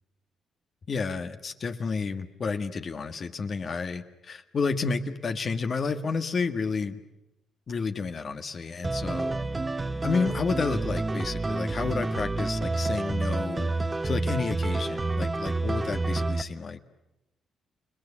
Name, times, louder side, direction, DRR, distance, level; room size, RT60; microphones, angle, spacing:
voice 1, 0.9-7.0 7.7-9.3 10.0-13.7 14.0-16.8, left 4 dB, 45° left, 8 dB, 1.7 m, -30 dB
sound 1, 8.8-16.4, right 2 dB, 20° right, 1.0 m, -29 dB
29.5 x 19.5 x 10.0 m, 0.92 s
cardioid pair, 90°, 0 cm